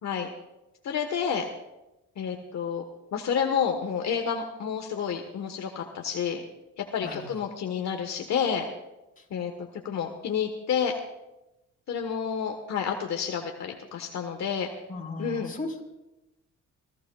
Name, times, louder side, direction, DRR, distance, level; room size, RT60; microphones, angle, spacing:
voice 1, 0.8-1.4 2.2-2.8 3.1-6.4 6.8-8.7 9.3-10.9 11.9-14.7 15.2-15.5, left 7 dB, 65° left, 4 dB, 1.3 m, -29 dB
voice 2, 14.9-15.8, left 3 dB, 25° left, -1 dB, 4.7 m, -36 dB
28.5 x 15.5 x 2.3 m, 0.98 s
cardioid pair, 90°, 30 cm